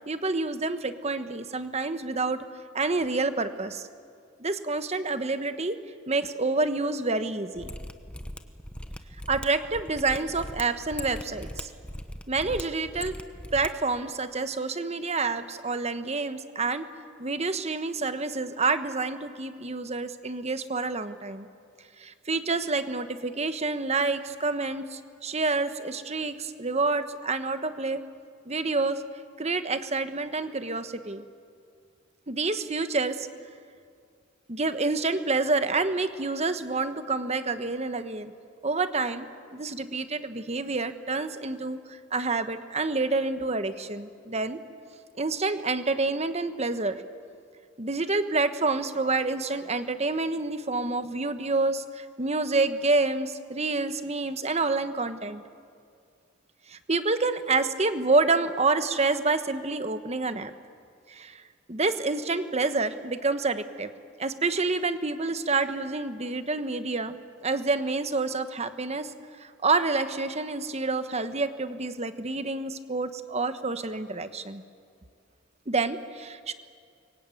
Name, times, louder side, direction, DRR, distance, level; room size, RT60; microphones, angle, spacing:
voice 1, 0.1-2.5 2.7-3.9 4.4-7.7 9.3-11.7 12.3-13.1 13.5-16.9 17.2-21.5 22.0-28.0 28.4-29.0 29.4-31.2 32.3-33.3 34.5-38.3 38.6-39.3 39.5-44.6 45.2-47.0 47.8-55.4 56.7-60.5 61.1-61.4 61.7-63.9 64.2-69.1 69.4-74.6 75.7-76.5, right 3 dB, 30° right, 10 dB, 1.1 m, -28 dB
Mechanisms, 7.6-13.7 13.9-14.0, left 1 dB, 5° left, 1.0 m, -39 dB
26.0 x 23.0 x 9.2 m, 2.3 s
head